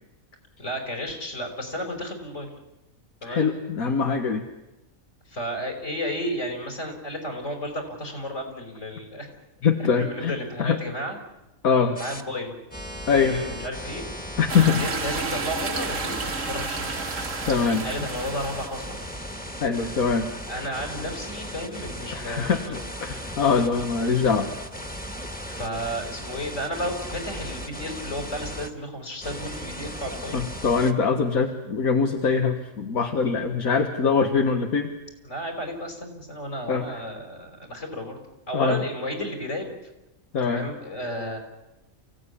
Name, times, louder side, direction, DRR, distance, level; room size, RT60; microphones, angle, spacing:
voice 1, 0.6-2.5 3.2-3.5 5.3-9.4 9.8-11.2 11.8-12.6 13.2-14.0 14.5-17.0 17.8-19.1 20.5-22.8 25.5-30.4 35.2-38.2 38.5-39.8 40.4-41.4, equal, 60° left, 3 dB, 5.7 m, -33 dB
voice 2, 3.2-4.4 9.6-10.3 10.6-10.8 11.6-12.0 13.1-13.4 14.4-14.8 17.5-17.8 19.6-20.3 22.1-24.5 30.3-34.9 36.7-36.8 38.5-38.8 40.3-40.6, left 5 dB, 85° left, 4 dB, 2.0 m, -23 dB
sound 1, 12.0-12.2 12.7-28.7 29.2-30.9, equal, 5° left, 1.7 m, -37 dB
sound 2, 14.5-19.0, right 4 dB, 65° right, 1.8 m, -32 dB
28.5 x 16.5 x 10.0 m, 0.99 s
omnidirectional pair, 1.4 m